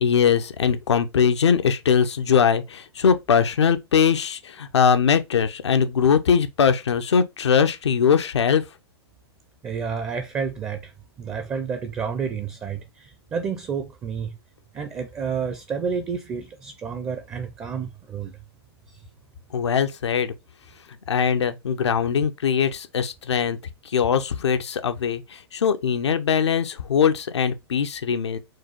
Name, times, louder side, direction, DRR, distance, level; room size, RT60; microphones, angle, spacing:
voice 1, 0.0-8.6 19.5-20.3 21.1-23.6 23.9-28.4, left 7 dB, 85° left, 0.7 m, -21 dB
voice 2, 9.6-10.9 11.2-14.4 14.7-18.4 18.9-19.0, right 6 dB, 15° right, 0.5 m, -30 dB
4.7 x 2.3 x 4.3 m
hypercardioid pair, 130°, 14 cm